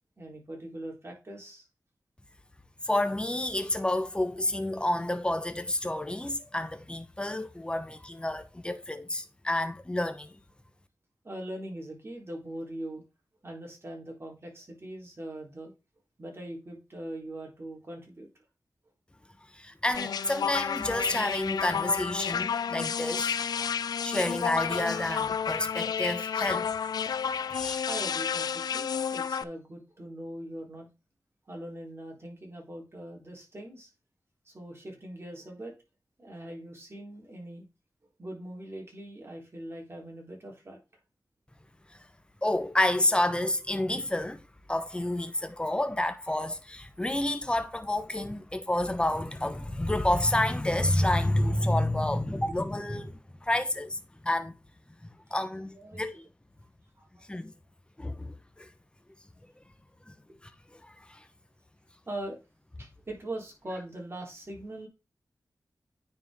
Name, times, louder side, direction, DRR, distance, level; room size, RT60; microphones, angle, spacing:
voice 1, 0.2-1.7 11.2-13.0 13.4-15.7 16.2-18.3 27.9-30.9 31.5-33.9 34.5-35.7 36.2-37.6 38.2-40.8 55.7-56.3 57.0-57.3 62.1-62.4 62.8-64.9, right 1 dB, 40° right, 3.5 m, -41 dB
voice 2, 2.8-10.3 19.5-23.4 24.0-26.7 27.5-27.8 42.4-44.4 44.7-54.5 55.0-56.1 57.3-57.5 58.0-58.7 60.1-60.2 60.8-61.2, left 1 dB, 15° left, 1.0 m, -29 dB
sound 1, 19.9-29.4, left 7 dB, 85° left, 0.4 m, -31 dB
9.4 x 4.7 x 3.6 m
cardioid pair, 60°, 7 cm